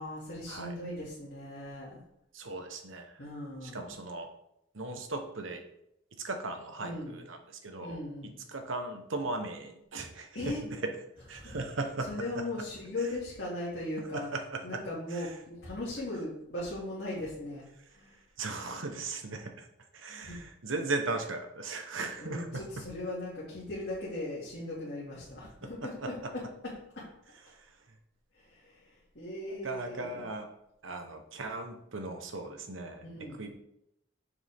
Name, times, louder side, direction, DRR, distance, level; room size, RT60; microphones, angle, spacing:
voice 1, 0.0-2.1 3.2-4.1 6.8-7.2 7.8-8.3 10.3-10.6 11.4-11.6 12.1-14.3 14.6-18.2 20.2-20.4 22.2-27.1 28.3-30.2 33.0-33.5, left 1 dB, 60° left, -8 dB, 2.4 m, -38 dB
voice 2, 2.3-3.2 3.6-4.3 4.7-5.6 6.1-8.0 8.5-11.0 11.3-12.4 14.1-14.8 15.1-15.3 18.4-19.7 19.9-22.6 25.6-26.3 27.5-27.7 29.5-30.5 30.8-33.1 33.4-33.6, right 3 dB, 85° right, 5 dB, 1.1 m, -37 dB
7.0 x 6.4 x 3.6 m, 0.79 s
head